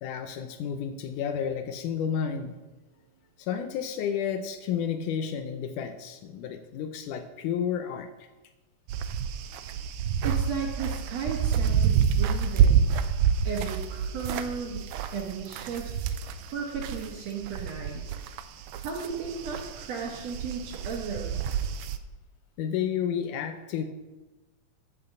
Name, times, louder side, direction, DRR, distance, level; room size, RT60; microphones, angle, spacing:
voice 1, 0.0-2.6 3.4-8.3 22.6-23.8, left 8 dB, 85° left, 7 dB, 2.2 m, -31 dB
sound 1, 8.9-17.1 17.4-22.0, right 7 dB, 80° right, 1.8 m, -28 dB
voice 2, 10.2-12.9 13.5-15.9 16.5-18.1 18.8-21.4, right 5 dB, 65° right, -1 dB, 2.1 m, -35 dB
13.5 x 5.3 x 7.1 m, 1.1 s
omnidirectional pair, 3.5 m